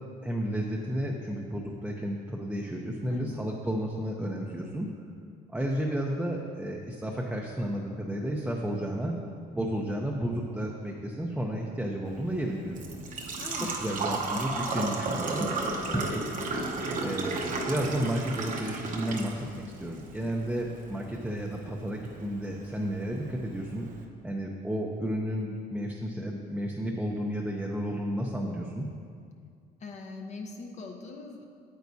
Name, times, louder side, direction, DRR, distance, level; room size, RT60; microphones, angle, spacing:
voice 1, 0.2-4.9 5.5-9.1 9.5-12.8 13.6-15.5 15.9-16.2 17.0-23.9 24.2-28.9, equal, 5° right, -2 dB, 0.6 m, -32 dB
Engine / Trickle dribble / Fill (with liquid), 12.1-24.0, right 3 dB, 50° right, 0.9 m, -35 dB
voice 2, 13.4-14.1 15.7-16.2 29.8-31.4, left 3 dB, 45° left, 2 dB, 0.8 m, -42 dB
9.3 x 8.0 x 2.7 m, 2.2 s
cardioid pair, 110°, 17 cm